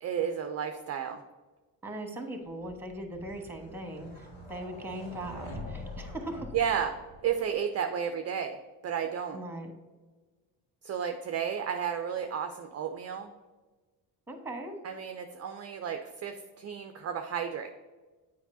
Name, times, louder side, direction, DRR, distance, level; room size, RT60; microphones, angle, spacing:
voice 1, 0.0-1.2 6.5-6.9 7.2-8.6 8.8-9.4 10.8-13.3 14.8-17.7, right 8 dB, 30° right, 6 dB, 0.5 m, -32 dB
voice 2, 1.8-6.5 9.3-9.7 14.3-14.8, right 1 dB, 5° right, 4 dB, 1.2 m, -39 dB
sound 1, 2.6-7.5, left 1 dB, 80° left, 2.0 m, -44 dB
7.9 x 4.8 x 2.7 m, 1.3 s
hypercardioid pair, 50°, 50 cm